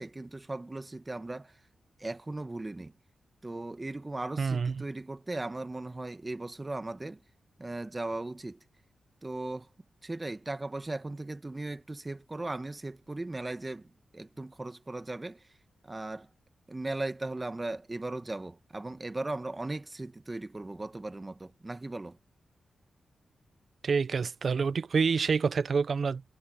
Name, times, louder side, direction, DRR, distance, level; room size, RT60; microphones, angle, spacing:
voice 1, 0.0-1.5 2.0-2.9 3.4-7.2 7.6-8.6 9.2-9.7 10.0-15.5 15.8-16.3 16.7-22.2, right 2 dB, 25° right, 1.4 m, -37 dB
voice 2, 4.4-4.8 23.8-26.2, right 5 dB, 60° right, 0.6 m, -27 dB
cardioid pair, 60°, 0 cm